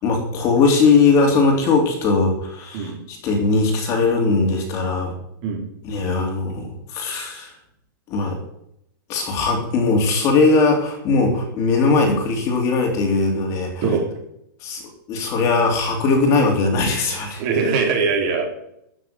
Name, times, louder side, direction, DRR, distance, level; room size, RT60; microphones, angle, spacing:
voice 1, 0.0-5.2 5.8-7.5 8.1-8.4 9.1-13.8 14.6-17.4, left 4 dB, 25° left, 3 dB, 2.9 m, -19 dB
voice 2, 17.4-18.5, right 5 dB, 35° right, 1 dB, 3.7 m, -21 dB
14.0 x 6.7 x 9.2 m, 0.76 s
supercardioid pair, 165°, 11 cm